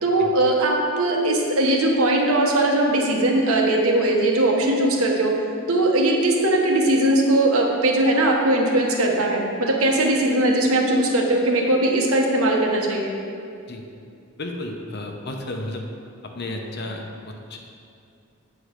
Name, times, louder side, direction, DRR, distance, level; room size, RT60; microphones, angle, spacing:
voice 1, 0.0-5.3 5.7-13.1, right 1 dB, 80° right, 0 dB, 1.3 m, -20 dB
voice 2, 14.4-15.8 16.3-17.6, left 1 dB, 50° left, 2 dB, 0.8 m, -32 dB
8.4 x 4.6 x 6.4 m, 2.4 s
head